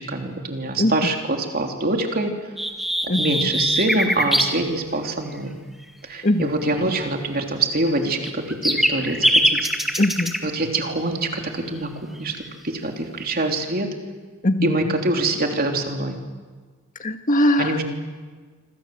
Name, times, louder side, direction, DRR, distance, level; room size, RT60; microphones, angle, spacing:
voice 1, 0.0-2.3 3.2-5.5 6.0-9.7 10.4-13.9 14.6-16.1 17.6-17.8, right 2 dB, 45° right, 3 dB, 3.4 m, -25 dB
sound 1, 2.6-4.5 8.1-10.4, equal, ahead, 2.1 m, -21 dB
voice 2, 3.1-3.5 6.2-6.5 10.0-10.4 14.4-14.9 17.0-17.8, left 1 dB, 40° left, 7 dB, 1.7 m, -21 dB
26.5 x 26.0 x 7.8 m, 1.4 s
head